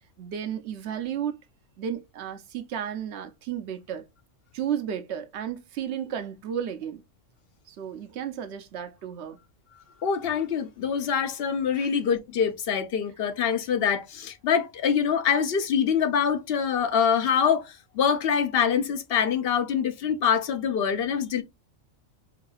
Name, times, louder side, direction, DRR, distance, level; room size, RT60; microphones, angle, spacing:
voice 1, 0.2-1.4 1.8-4.0 4.5-7.0 7.7-9.4 11.8-11.9, right 9 dB, 60° right, 0.8 m, -33 dB
voice 2, 10.0-21.4, left 7 dB, 55° left, 0.7 m, -25 dB
4.8 x 2.7 x 2.3 m
omnidirectional pair, 1.4 m